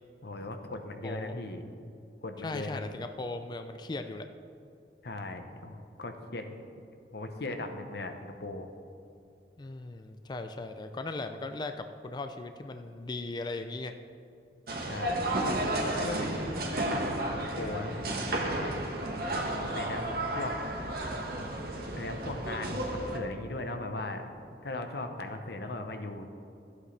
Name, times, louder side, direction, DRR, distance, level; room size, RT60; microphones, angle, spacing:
voice 1, 0.2-1.6 2.2-2.8 5.0-6.6 7.1-8.7 14.9-15.3 15.9-18.8 19.7-20.5 21.9-24.2 24.6-26.3, left 2 dB, 65° left, 6 dB, 0.9 m, -38 dB
voice 2, 1.0-1.3 2.4-4.3 9.6-13.9, left 2 dB, 25° left, 7 dB, 0.4 m, -38 dB
sound 1, 14.7-23.2, right 1 dB, 60° right, 1.3 m, -32 dB
14.5 x 8.1 x 3.3 m, 2.5 s
head